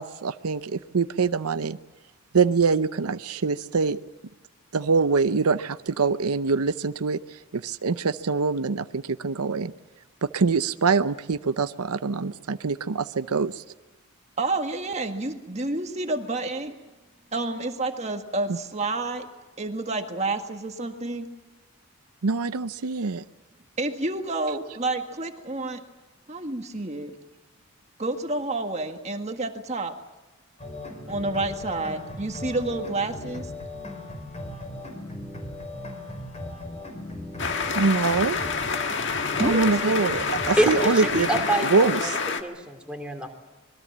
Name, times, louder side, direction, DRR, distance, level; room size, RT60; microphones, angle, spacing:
voice 1, 0.0-1.8 2.3-4.0 4.7-7.2 7.5-9.7 10.2-13.6 22.2-23.2 37.7-38.4 39.4-41.3 41.6-42.1, right 4 dB, 85° right, 12 dB, 0.7 m, -24 dB
voice 2, 14.4-16.7 17.3-19.3 19.6-21.3 23.8-25.8 26.3-27.1 28.0-29.9 31.1-33.5 39.4-40.2, right 2 dB, 30° right, 5 dB, 1.8 m, -29 dB
sound 1, 30.6-41.4, left 2 dB, 30° left, 5.1 m, -38 dB
sound 2, 37.4-42.4, left 5 dB, 55° left, 1.7 m, -28 dB
voice 3, 40.6-42.1 42.4-43.3, right 1 dB, 5° right, 2 dB, 2.8 m, -26 dB
26.5 x 21.5 x 7.4 m, 1.2 s
head